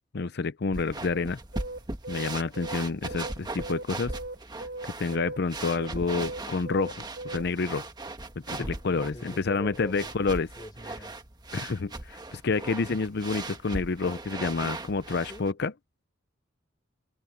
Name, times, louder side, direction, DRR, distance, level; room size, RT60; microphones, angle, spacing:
voice 1, 0.1-1.4 2.1-4.1 5.0-7.9 8.5-10.5 11.5-15.7, left 4 dB, 55° left, 0.6 m, -29 dB
sound 1, 0.7-15.5, right 2 dB, 20° right, 1.4 m, -39 dB
sound 2, 1.5-7.7, right 2 dB, 60° right, 4.1 m, -38 dB
voice 2, 8.6-10.1 10.5-11.1 15.3-15.5, left 1 dB, 20° left, 4.8 m, -43 dB
head